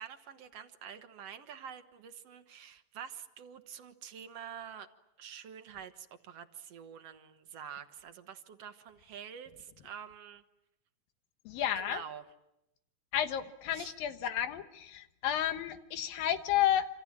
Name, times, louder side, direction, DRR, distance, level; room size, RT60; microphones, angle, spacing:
voice 1, 0.0-4.9 5.2-10.4 11.7-12.2 13.7-13.9, right 8 dB, 60° right, 8 dB, 1.9 m, -47 dB
voice 2, 11.5-12.0 13.1-16.9, left 11 dB, 85° left, 9 dB, 3.1 m, -31 dB
27.5 x 26.5 x 7.4 m, 0.87 s
omnidirectional pair, 4.0 m